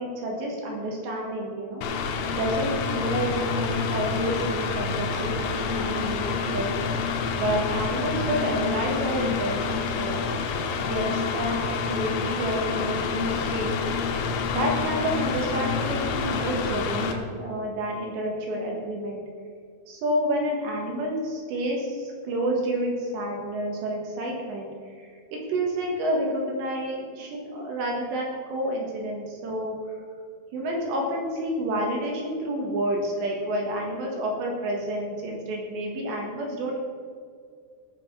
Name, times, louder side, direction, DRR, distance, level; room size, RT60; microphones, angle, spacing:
voice 1, 0.0-1.9 2.3-6.7 7.4-10.2 10.8-13.7 14.5-19.2 19.9-30.0 30.5-36.8, right 1 dB, 70° right, 0 dB, 3.4 m, -29 dB
Mechanical fan, 1.8-17.1, left 5 dB, 75° left, 3.0 m, -28 dB
17.5 x 5.9 x 5.7 m, 2.1 s
omnidirectional pair, 5.9 m